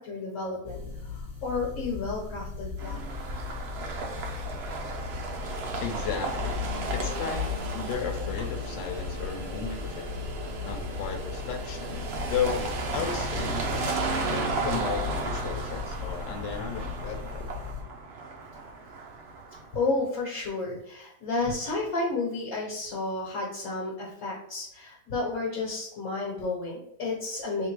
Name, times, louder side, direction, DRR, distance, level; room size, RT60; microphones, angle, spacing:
voice 1, 0.0-3.0 19.7-27.7, left 3 dB, 60° left, -3 dB, 1.4 m, -31 dB
sound 1, 0.6-17.8, left 6 dB, 10° right, 1.1 m, -37 dB
sound 2, 2.8-19.8, right 4 dB, 65° right, 0.6 m, -34 dB
voice 2, 5.8-6.6 6.9-10.0 10.6-12.0 12.3-13.6 14.3-17.4, left 7 dB, 80° left, 4 dB, 1.3 m, -34 dB
3.5 x 2.9 x 4.6 m, 0.77 s
omnidirectional pair, 1.9 m